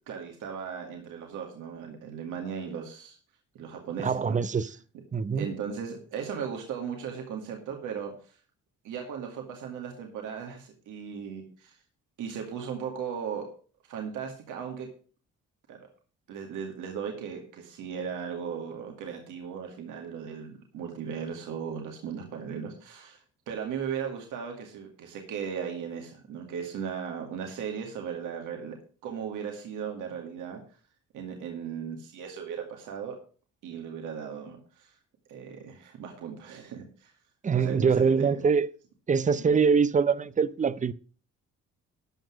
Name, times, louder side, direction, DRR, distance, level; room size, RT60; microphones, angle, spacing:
voice 1, 0.1-3.2 3.5-4.4 5.4-8.4 8.8-11.8 12.2-13.5 13.9-14.9 15.7-15.8 16.3-28.8 29.0-30.6 31.1-33.1 33.6-35.0 35.3-37.1 37.5-38.4 39.4-39.6, right 7 dB, 85° right, 2.2 m, -37 dB
voice 2, 4.0-4.7 5.1-5.5 37.4-38.7 39.1-40.9, right 5 dB, 25° right, 0.6 m, -24 dB
12.5 x 5.9 x 6.2 m
cardioid pair, 90°, 30 cm